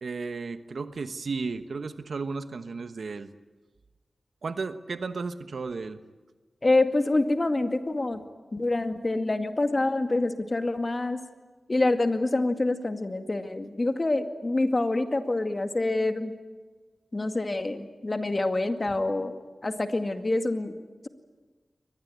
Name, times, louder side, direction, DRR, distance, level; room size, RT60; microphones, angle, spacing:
voice 1, 0.0-3.3 4.4-6.0, right 4 dB, 80° right, 10 dB, 1.2 m, -34 dB
voice 2, 6.6-8.2 8.5-11.2 11.7-16.4 17.1-19.4 19.6-20.7, left 2 dB, 40° left, 7 dB, 2.1 m, -26 dB
23.5 x 19.5 x 9.5 m, 1.3 s
cardioid pair, 45°, 0 cm